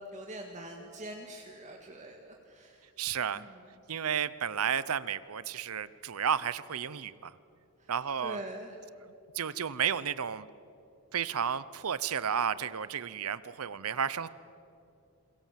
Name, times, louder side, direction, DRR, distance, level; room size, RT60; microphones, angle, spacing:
voice 1, 0.1-2.9 3.4-3.7 7.8-7.9 8.2-8.8, right 1 dB, 35° right, 2 dB, 1.8 m, -44 dB
voice 2, 3.0-3.4 3.9-7.3 7.9-8.4 9.3-10.5 11.1-14.3, right 8 dB, 70° right, 17 dB, 0.7 m, -32 dB
28.0 x 22.0 x 7.5 m, 2.6 s
head